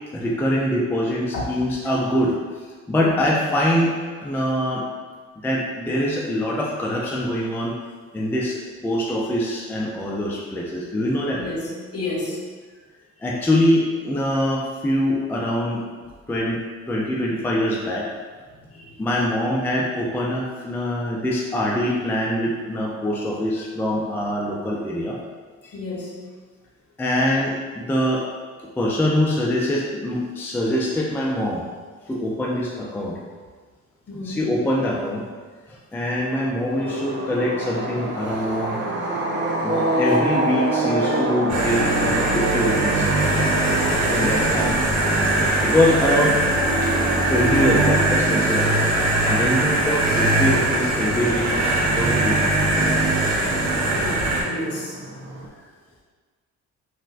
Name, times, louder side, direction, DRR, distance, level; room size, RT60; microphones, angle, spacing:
voice 1, 0.1-2.3 2.9-4.8 5.4-7.7 8.1-11.4 13.2-15.8 16.3-16.6 16.9-18.1 19.0-25.2 25.6-25.7 27.0-28.3 28.8-31.6 32.1-33.2 34.2-35.2 35.7-38.8 39.6-43.1 44.1-44.8 45.6-46.4 46.8-46.9 47.3-48.8 49.2-51.5 51.9-52.4 52.7-53.0 53.4-53.6, left 1 dB, 5° left, -3 dB, 0.4 m, -23 dB
voice 2, 11.4-12.4 18.6-18.9 25.7-26.1 34.1-34.4 38.2-38.3 49.2-49.3 53.9-55.0, left 2 dB, 50° left, -4 dB, 0.9 m, -31 dB
sound 1, 36.7-55.5, right 2 dB, 40° right, 0.6 m, -29 dB
sound 2, 41.5-54.4, right 2 dB, 65° right, 1.0 m, -21 dB
4.2 x 2.1 x 2.5 m, 1.5 s
cardioid pair, 90°, 30 cm